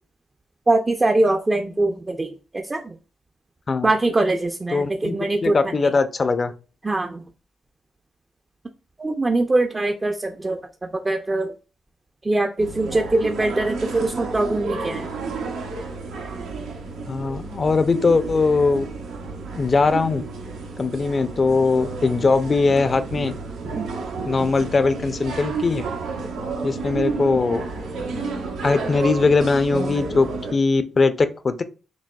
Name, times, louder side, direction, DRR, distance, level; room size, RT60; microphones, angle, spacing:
voice 1, 0.7-3.0 3.8-5.9 6.8-7.2 9.0-11.5 12.2-15.1 23.7-23.9, right 2 dB, 25° right, 4 dB, 0.4 m, -22 dB
voice 2, 4.7-6.5 17.1-18.9 19.6-20.2 20.8-23.3 24.2-25.8 26.6-27.6 28.6-31.6, left 4 dB, 40° left, 11 dB, 0.5 m, -20 dB
sound 1, 12.6-30.5, right 4 dB, 85° right, 0.7 m, -31 dB
6.0 x 2.2 x 2.2 m, 0.33 s
supercardioid pair, 60°, 0 cm